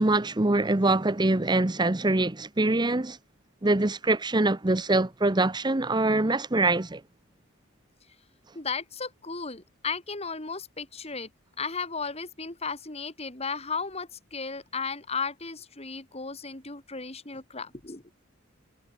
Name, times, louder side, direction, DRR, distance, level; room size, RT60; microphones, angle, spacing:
voice 1, 0.0-3.2 3.6-7.0, right 2 dB, 20° right, 0.8 m, -24 dB
voice 2, 8.5-11.3 11.6-18.0, left 4 dB, 30° left, 2.8 m, -35 dB
head